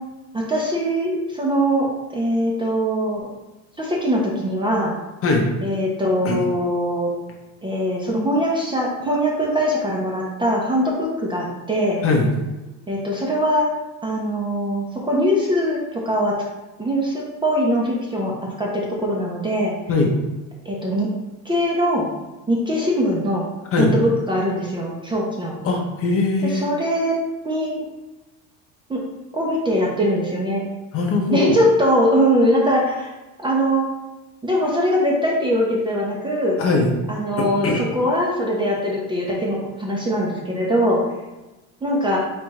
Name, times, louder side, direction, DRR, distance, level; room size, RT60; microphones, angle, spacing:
voice 1, 0.3-3.3 3.8-5.0 5.6-7.1 7.6-12.0 12.9-13.7 14.0-16.3 16.8-19.7 20.6-21.1 21.4-22.1 22.5-23.5 23.8-25.6 26.4-27.2 27.4-27.7 28.9-29.0 29.3-30.6 31.3-33.1 33.4-33.9 34.4-36.6 37.1-41.0 41.8-42.2, equal, 10° right, -3 dB, 0.6 m, -21 dB
voice 2, 25.6-26.6 30.9-31.6 36.6-36.9 37.4-37.8, left 3 dB, 35° left, 0 dB, 0.8 m, -20 dB
4.3 x 2.5 x 4.6 m, 1.1 s
cardioid pair, 135°, 39 cm